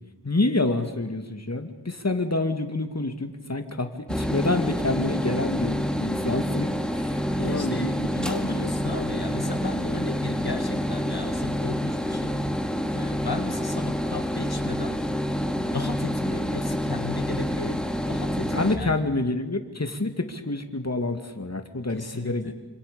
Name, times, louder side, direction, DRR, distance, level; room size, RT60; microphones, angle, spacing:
voice 1, 0.2-8.1 18.5-22.5, left 2 dB, 40° left, 7 dB, 2.3 m, -28 dB
sound 1, 4.1-18.8, equal, ahead, 2.4 m, -28 dB
voice 2, 7.3-12.4 12.9-15.3 15.6-19.0 21.9-22.5, left 3 dB, 70° left, 6 dB, 1.8 m, -35 dB
27.0 x 26.5 x 6.9 m, 1.2 s
wide cardioid pair, 50°, 39 cm